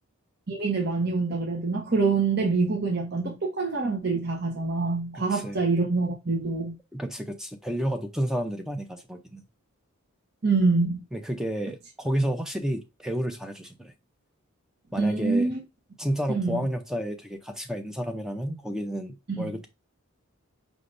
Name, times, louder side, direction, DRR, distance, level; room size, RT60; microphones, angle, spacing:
voice 1, 0.5-6.7 10.4-11.0 15.0-15.6 16.3-16.6 19.3-19.5, right 3 dB, 45° right, 0.9 m, -25 dB
voice 2, 5.1-5.6 6.9-9.4 11.1-13.9 14.9-15.5 16.0-19.7, equal, ahead, 0.5 m, -31 dB
5.0 x 3.3 x 2.5 m
head